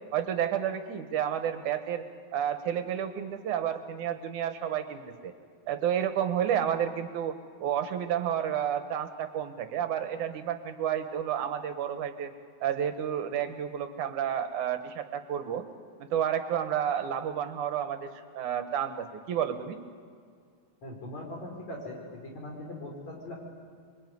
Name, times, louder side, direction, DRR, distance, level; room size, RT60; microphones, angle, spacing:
voice 1, 0.1-2.1 2.3-5.3 5.7-12.3 12.6-15.6 16.0-19.8, right 9 dB, 80° right, 9 dB, 2.8 m, -31 dB
voice 2, 20.8-23.3, left 1 dB, 65° left, 0 dB, 6.5 m, -40 dB
26.5 x 22.0 x 9.5 m, 2.2 s
omnidirectional pair, 3.4 m